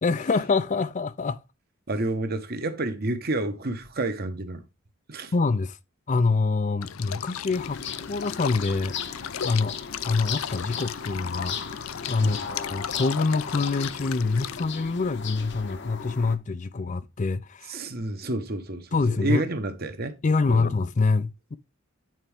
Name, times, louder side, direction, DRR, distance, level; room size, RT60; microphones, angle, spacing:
voice 1, 0.0-1.4 5.3-5.8 6.1-7.8 8.1-8.9 9.4-9.8 10.0-17.8 18.9-19.4 20.2-21.6, left 4 dB, 35° left, 0.5 m, -25 dB
voice 2, 1.9-4.6 5.1-5.3 12.2-12.4 17.7-20.2 20.5-20.7, right 2 dB, 45° right, 1.2 m, -29 dB
sound 1, 6.8-14.6, left 9 dB, 85° left, 0.5 m, -36 dB
sound 2, 7.5-16.4, left 6 dB, 60° left, 1.0 m, -37 dB
9.1 x 4.5 x 3.5 m
head